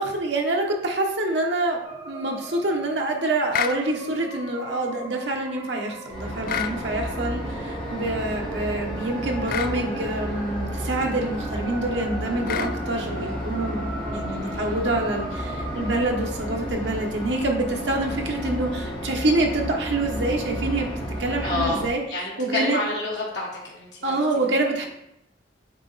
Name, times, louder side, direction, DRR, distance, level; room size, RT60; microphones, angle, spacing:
voice 1, 0.0-1.8 2.0-20.9 21.2-22.8 24.0-24.9, right 2 dB, 75° right, 1 dB, 1.1 m, -26 dB
sound 1, 1.8-16.2, right 1 dB, 30° right, 1.7 m, -39 dB
sound 2, 3.5-3.8 6.5-6.8 9.5-9.8 12.5-12.8, left 8 dB, 55° left, 0.3 m, -27 dB
sound 3, 6.1-21.9, equal, 30° left, 1.9 m, -32 dB
voice 2, 14.3-14.8 21.4-21.8 22.1-24.1, left 2 dB, 70° left, -4 dB, 1.2 m, -29 dB
8.1 x 3.0 x 4.0 m, 0.81 s
head